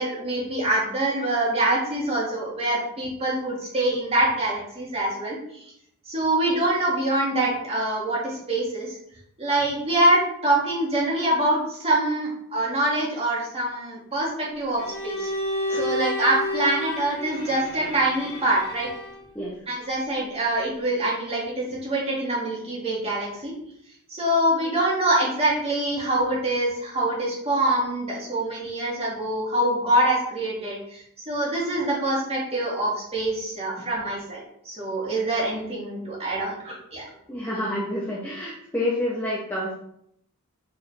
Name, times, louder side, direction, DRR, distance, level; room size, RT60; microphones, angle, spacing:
voice 1, 0.0-5.4 6.1-9.0 9.4-15.3 15.7-18.9 19.7-23.5 24.1-34.4 34.7-37.0, right 1 dB, 30° right, -5 dB, 2.4 m, -25 dB
Bowed string instrument, 14.8-19.3, left 1 dB, 60° left, 2.8 m, -31 dB
voice 2, 37.3-39.7, left 1 dB, 10° left, -5 dB, 1.1 m, -28 dB
6.9 x 4.7 x 3.4 m, 0.71 s
head